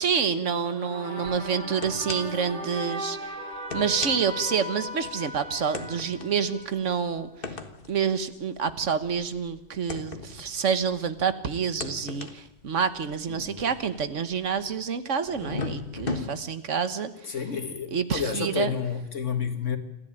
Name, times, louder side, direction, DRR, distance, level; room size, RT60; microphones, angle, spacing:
voice 1, 0.0-3.4 3.7-7.3 7.9-17.4 17.9-18.7, right 6 dB, 85° right, 12 dB, 1.6 m, -28 dB
sound 1, 0.6-7.0, equal, 40° right, 3.5 m, -37 dB
sound 2, 1.2-1.4 1.8-2.5 2.8-2.9 3.5-5.1 5.7-11.2 11.6-14.7 15.3-16.3, left 4 dB, 50° left, 1.8 m, -38 dB
voice 2, 13.3-13.7 17.3-19.8, left 6 dB, 85° left, 8 dB, 2.3 m, -30 dB
27.5 x 13.5 x 8.9 m, 0.85 s
omnidirectional pair, 1.2 m